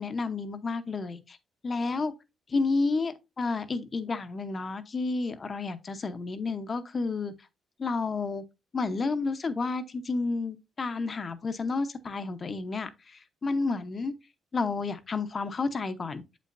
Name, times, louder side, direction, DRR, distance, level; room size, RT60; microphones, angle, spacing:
voice 1, 0.0-1.4 1.6-2.1 2.5-7.3 7.8-8.4 8.7-14.1 14.5-16.2, left 3 dB, 40° left, 0.8 m, -31 dB
7.5 x 5.4 x 2.6 m
cardioid pair, 90°, 0 cm